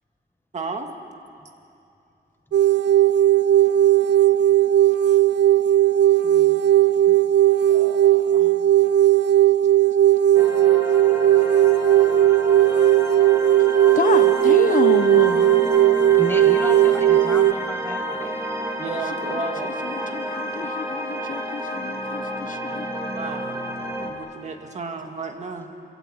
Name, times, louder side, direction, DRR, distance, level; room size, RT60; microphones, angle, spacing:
voice 1, 0.5-0.9 5.1-5.2 6.2-6.6 7.7-8.5 18.8-19.8 22.6-23.5 24.0-25.7, right 4 dB, 40° right, 4 dB, 2.1 m, -34 dB
sound 1, 2.5-17.5, right 12 dB, 80° right, 0.6 m, -17 dB
sound 2, 10.3-24.1, right 1 dB, 15° right, 2.8 m, -30 dB
voice 2, 13.9-15.5 19.3-22.9, left 6 dB, 50° left, 8 dB, 1.1 m, -28 dB
voice 3, 16.1-18.5 20.6-20.7, left 1 dB, 10° left, 6 dB, 1.4 m, -33 dB
26.5 x 25.0 x 8.1 m, 2.6 s
wide cardioid pair, 165°, 18 cm